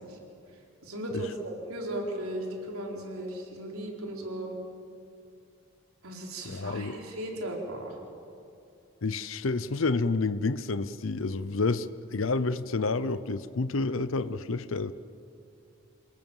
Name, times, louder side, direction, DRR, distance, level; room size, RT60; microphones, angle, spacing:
voice 1, 0.8-4.5 6.0-7.9, right 1 dB, 90° right, 0 dB, 4.3 m, -36 dB
voice 2, 6.4-7.0 9.0-14.9, left 3 dB, 70° left, 13 dB, 0.7 m, -29 dB
28.0 x 18.5 x 7.3 m, 2.6 s
head